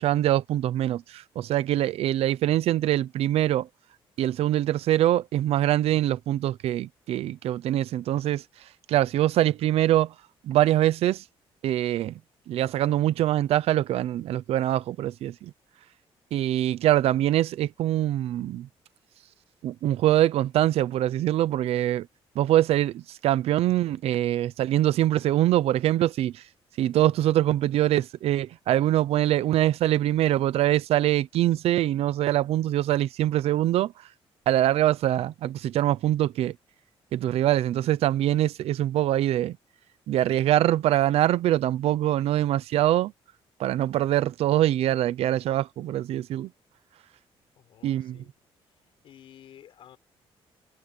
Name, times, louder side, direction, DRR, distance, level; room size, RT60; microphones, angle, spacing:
voice 1, 0.0-3.7 4.2-8.4 8.9-10.1 10.4-11.2 11.6-12.2 12.5-15.5 16.3-18.7 19.6-22.1 22.3-26.4 26.8-33.9 34.5-36.6 37.1-39.6 40.1-43.1 43.6-46.5 47.8-48.2, right 13 dB, 80° right, 0.8 m, -24 dB
voice 2, 47.6-48.3 48.7-50.0, left 10 dB, 60° left, 6.8 m, -52 dB
cardioid pair, 180°, 10 cm